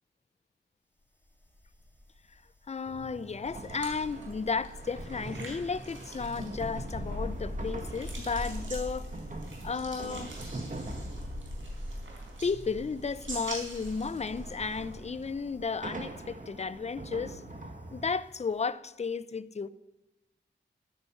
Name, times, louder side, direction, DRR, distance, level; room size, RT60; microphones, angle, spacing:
sound 1, 1.5-2.4 2.6-16.2 16.4-16.7, left 1 dB, 10° left, 2.7 m, -42 dB
voice 1, 2.7-9.1 9.6-10.3 12.4-17.4 17.9-19.7, left 5 dB, 35° left, 0.5 m, -33 dB
sound 2, 2.9-18.1, right 2 dB, 40° right, 1.6 m, -44 dB
sound 3, 3.5-15.7, right 2 dB, 75° right, 4.3 m, -46 dB
11.5 x 10.0 x 7.1 m
wide cardioid pair, 70°, 20 cm